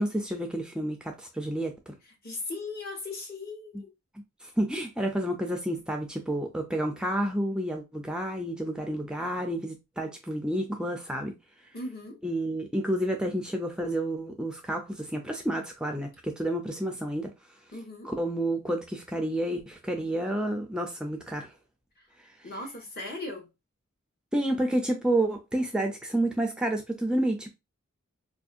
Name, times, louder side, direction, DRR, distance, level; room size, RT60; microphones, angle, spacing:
voice 1, 0.0-1.9 4.4-11.3 12.2-17.3 18.0-21.5 24.3-27.5, right 1 dB, 5° right, 0.4 m, -30 dB
voice 2, 2.2-3.9 11.7-12.2 17.7-18.1 22.0-22.1 22.4-23.5, left 2 dB, 45° left, 1.1 m, -38 dB
4.2 x 2.6 x 2.4 m
head